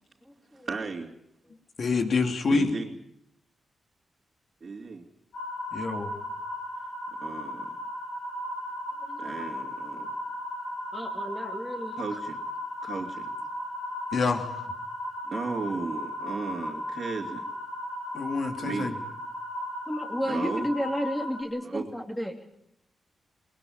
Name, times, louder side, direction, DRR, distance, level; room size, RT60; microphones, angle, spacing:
voice 1, 0.6-1.1 2.5-3.0 4.6-5.0 7.2-7.7 9.2-10.1 12.0-12.4 12.8-13.3 15.3-17.4 18.6-19.0 20.3-20.7 21.6-21.9, right 4 dB, 50° right, -2 dB, 2.9 m, -34 dB
voice 2, 1.8-2.7 5.7-6.1 14.1-14.6 18.1-18.9, left 4 dB, 60° left, 5 dB, 3.0 m, -27 dB
sound 1, 5.3-21.4, left 1 dB, 75° left, 4.1 m, -36 dB
voice 3, 9.1-9.5 10.9-11.9 19.9-22.3, equal, 10° left, 2 dB, 3.0 m, -32 dB
22.0 x 19.5 x 8.7 m, 0.80 s
cardioid pair, 75°, 0 cm